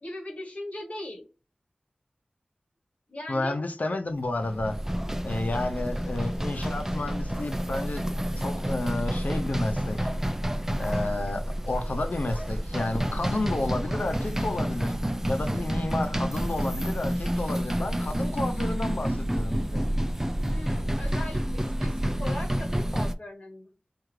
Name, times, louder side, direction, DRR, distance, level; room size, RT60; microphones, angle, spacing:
voice 1, 0.0-1.3 3.1-3.5 20.5-23.7, left 1 dB, 55° left, 1.2 m, -39 dB
voice 2, 3.3-4.8 5.2-8.0 8.4-10.1 10.8-14.9 15.3-19.8, left 2 dB, 75° left, 0.6 m, -31 dB
sound 1, 4.3-23.1, equal, 15° right, 0.5 m, -29 dB
4.6 x 2.5 x 3.2 m
wide cardioid pair, 40°, 3 cm